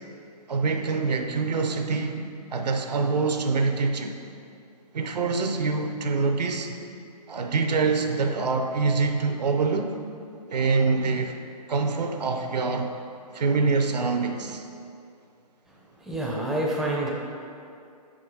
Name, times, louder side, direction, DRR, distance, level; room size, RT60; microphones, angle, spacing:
voice 1, 0.5-2.2 2.5-4.1 4.9-6.8 7.3-9.9 10.5-11.3 11.7-12.9 13.3-14.6, right 4 dB, 75° right, 5 dB, 0.6 m, -25 dB
voice 2, 15.9-17.1, right 1 dB, ahead, -4 dB, 0.4 m, -27 dB
5.2 x 4.9 x 3.8 m, 2.5 s
hypercardioid pair, 135°, 21 cm